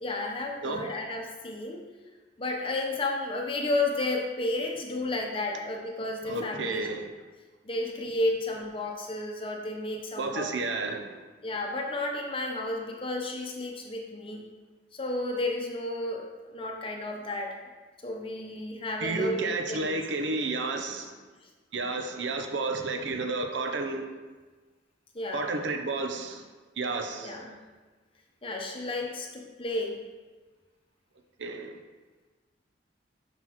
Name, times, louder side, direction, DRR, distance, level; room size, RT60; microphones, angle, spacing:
voice 1, 0.0-1.8 2.4-6.9 7.6-10.5 11.4-14.4 14.9-17.6 18.0-19.9 25.1-25.5 27.2-27.6 28.4-30.0, left 2 dB, 30° left, 1 dB, 0.7 m, -32 dB
voice 2, 6.2-7.0 10.2-11.2 19.0-21.2 21.7-24.1 25.3-26.5 26.8-27.4 31.4-31.7, right 3 dB, 80° right, 5 dB, 0.7 m, -31 dB
5.9 x 5.9 x 3.0 m, 1.3 s
head